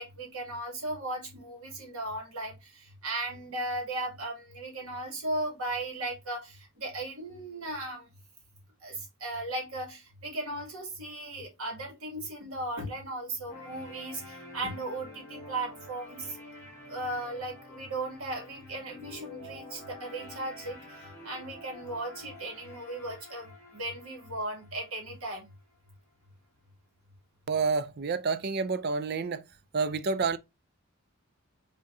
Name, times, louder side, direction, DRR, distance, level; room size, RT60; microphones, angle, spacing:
voice 1, 0.0-8.1 8.8-16.4 16.9-25.5, right 2 dB, 80° right, 2.4 m, -37 dB
sound 1, 13.5-25.5, left 2 dB, 15° left, 1.8 m, -48 dB
voice 2, 27.5-29.4 29.7-30.4, right 4 dB, 45° right, 0.4 m, -29 dB
5.4 x 3.4 x 2.6 m
head